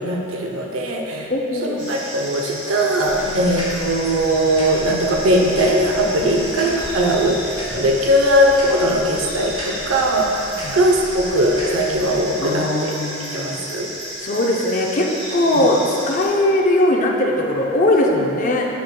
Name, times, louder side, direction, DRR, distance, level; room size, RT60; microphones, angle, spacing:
voice 1, 0.0-1.3 1.6-12.9 13.3-13.9 15.5-15.7, equal, 80° right, 1 dB, 0.7 m, -19 dB
voice 2, 1.3-1.9 3.2-3.4 6.2-6.4 10.6-10.8 12.4-13.6 14.2-18.7, left 1 dB, 40° left, 0 dB, 0.5 m, -20 dB
sound 1, 1.8-16.3, equal, 40° right, 1.4 m, -33 dB
sound 2, 3.0-12.3, equal, 25° right, 1.2 m, -35 dB
6.9 x 6.3 x 2.2 m, 2.9 s
head